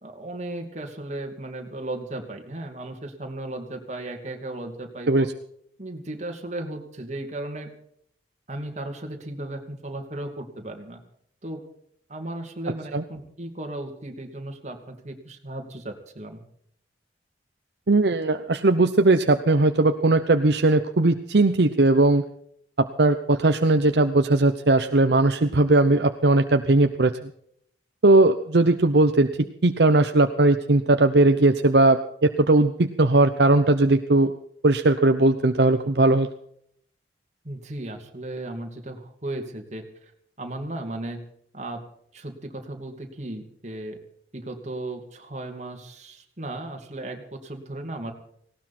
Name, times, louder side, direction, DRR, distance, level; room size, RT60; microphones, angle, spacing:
voice 1, 0.0-5.3 5.8-7.7 8.5-11.0 11.4-11.6 12.1-16.4 37.4-39.8 40.4-41.2 41.5-41.8 42.1-44.0 44.3-48.1, right 1 dB, 40° right, 4 dB, 2.5 m, -35 dB
voice 2, 17.9-22.2 22.8-27.1 28.0-29.3 29.6-34.3 34.6-36.3, right 2 dB, 65° right, 8 dB, 0.8 m, -19 dB
18.5 x 17.5 x 4.3 m, 0.68 s
head